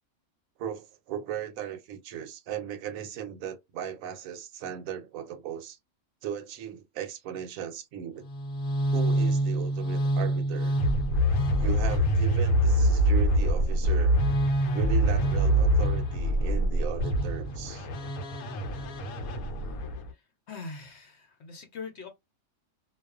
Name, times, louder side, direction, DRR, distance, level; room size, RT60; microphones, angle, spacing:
voice 1, 0.6-5.8 6.2-8.3 8.9-10.7 11.6-14.2 14.7-17.9, right 9 dB, 75° right, 1.0 m, -37 dB
sound 1, 8.2-20.1, right 1 dB, 85° left, 1.0 m, -25 dB
voice 2, 20.5-22.1, left 4 dB, 60° left, 0.9 m, -42 dB
2.3 x 2.3 x 2.3 m
omnidirectional pair, 1.5 m